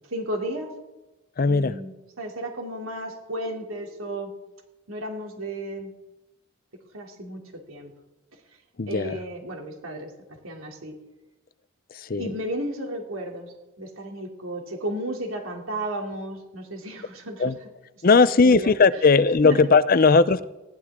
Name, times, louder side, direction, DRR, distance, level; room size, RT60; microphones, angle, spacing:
voice 1, 0.1-0.8 1.4-4.3 4.9-5.9 6.9-7.9 8.9-11.0 12.2-17.5 18.1-18.7 19.4-19.6, right 1 dB, 85° right, 2 dB, 3.0 m, -33 dB
voice 2, 1.4-1.8 8.8-9.1 11.9-12.3 17.4-17.6 18.0-20.5, left 4 dB, 45° left, 15 dB, 0.6 m, -18 dB
19.5 x 16.0 x 3.7 m, 1.0 s
head